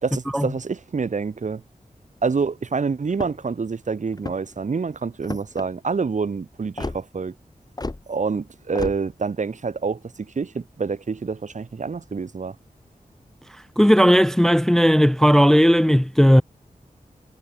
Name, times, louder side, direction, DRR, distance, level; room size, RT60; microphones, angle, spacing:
voice 1, 0.0-1.6 2.2-7.3 8.1-12.5, right 5 dB, 55° right, 1.1 m, -27 dB
sound 1, 3.1-3.5 4.1-4.6 5.2-5.7 6.8-7.0 7.8-8.0 8.8-9.0, left 2 dB, 25° left, 2.8 m, -31 dB
voice 2, 13.8-16.4, equal, 5° left, 0.4 m, -16 dB
wide cardioid pair, 105°, 15 cm